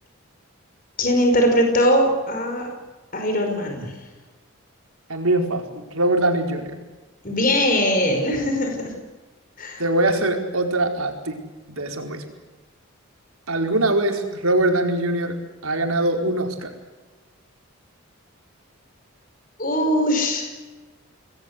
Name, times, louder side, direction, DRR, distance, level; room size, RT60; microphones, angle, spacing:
voice 1, 1.0-2.7 3.1-3.9 7.2-8.9 9.6-9.8 19.6-20.5, equal, 40° left, 4 dB, 5.2 m, -21 dB
voice 2, 5.1-6.7 9.8-11.4 11.7-12.2 13.5-15.3 15.6-16.7, right 1 dB, 80° right, 3 dB, 4.7 m, -22 dB
28.0 x 21.0 x 8.2 m, 1.2 s
head